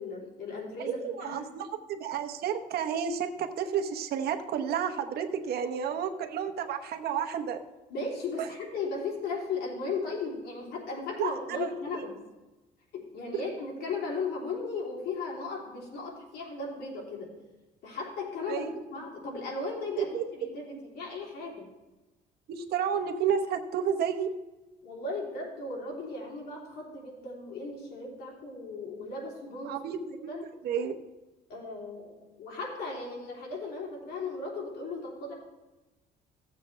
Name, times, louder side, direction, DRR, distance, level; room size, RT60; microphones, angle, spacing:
voice 1, 0.0-1.4 7.9-12.2 12.9-17.3 17.8-21.7 24.8-29.8 30.3-30.4 31.5-35.3, left 3 dB, 70° left, -2 dB, 3.2 m, -36 dB
voice 2, 1.0-7.6 8.4-8.5 11.2-11.7 13.3-13.4 18.5-18.8 20.0-20.2 22.5-24.3 29.7-30.3 30.6-31.0, right 8 dB, 70° right, 6 dB, 1.0 m, -31 dB
15.0 x 7.4 x 3.3 m, 1.1 s
cardioid pair, 110°, 17 cm